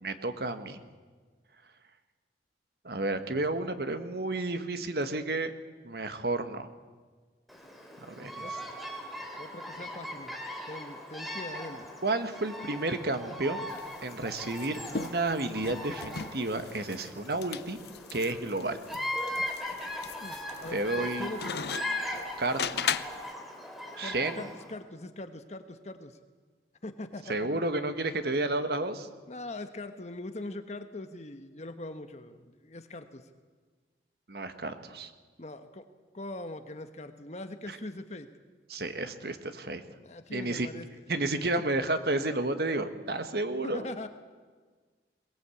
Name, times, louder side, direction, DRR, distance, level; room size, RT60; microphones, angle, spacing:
voice 1, 0.0-0.8 2.8-5.5 5.8-6.7 8.0-8.6 12.0-13.7 14.0-17.8 18.1-18.8 20.7-21.3 22.4-23.0 24.0-24.5 27.3-29.1 34.3-35.1 37.7-37.8 38.7-39.8 40.3-40.7 41.1-43.9, right 2 dB, 60° right, 9 dB, 1.5 m, -31 dB
Bird vocalization bird call bird song, 7.5-24.7, left 1 dB, ahead, 2.9 m, -39 dB
voice 2, 8.2-8.5 9.3-10.3 10.7-11.9 20.2-21.4 24.0-26.1 26.8-27.5 29.3-33.3 35.4-35.9 36.1-38.3 40.0-40.9 43.6-44.1, left 2 dB, 40° left, 8 dB, 1.2 m, -41 dB
sound 1, 13.7-23.3, left 7 dB, 65° left, 0.6 m, -38 dB
22.0 x 19.0 x 8.5 m, 1.4 s
head